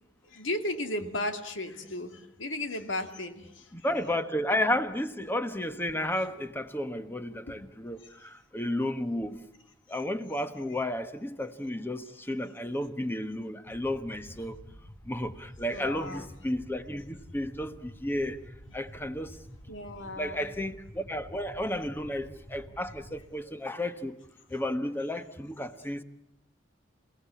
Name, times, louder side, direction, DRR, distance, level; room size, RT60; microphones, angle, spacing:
voice 1, 0.2-3.7 7.5-7.6 15.7-16.3 19.7-20.5, left 1 dB, 75° left, 2.3 m, -35 dB
voice 2, 3.7-9.4 9.9-14.6 15.0-18.4 18.7-19.4 20.2-24.2 24.5-26.0, left 1 dB, 10° left, 1.2 m, -32 dB
sound 1, 13.7-23.2, equal, 60° left, 3.8 m, -49 dB
28.5 x 17.5 x 8.5 m
head